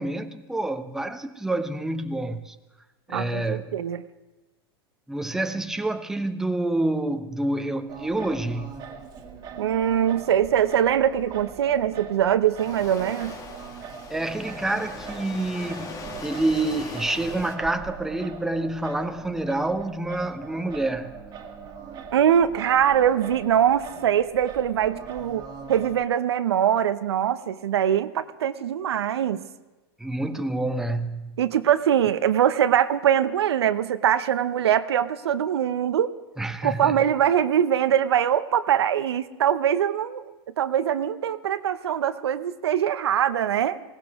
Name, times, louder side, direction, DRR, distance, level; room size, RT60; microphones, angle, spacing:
voice 1, 0.0-2.6 3.1-3.8 5.1-8.8 14.1-21.2 30.0-31.4 36.4-37.0, right 2 dB, 5° right, 0.8 m, -28 dB
voice 2, 3.1-4.0 9.6-13.4 22.1-29.4 31.4-36.1 36.6-40.2 40.6-43.8, right 9 dB, 85° right, 0.7 m, -22 dB
Singing, 7.9-26.0, right 6 dB, 30° right, 1.8 m, -41 dB
Waves surf, 12.6-17.6, left 4 dB, 25° left, 1.9 m, -40 dB
20.0 x 17.5 x 3.6 m
hypercardioid pair, 110°, 13 cm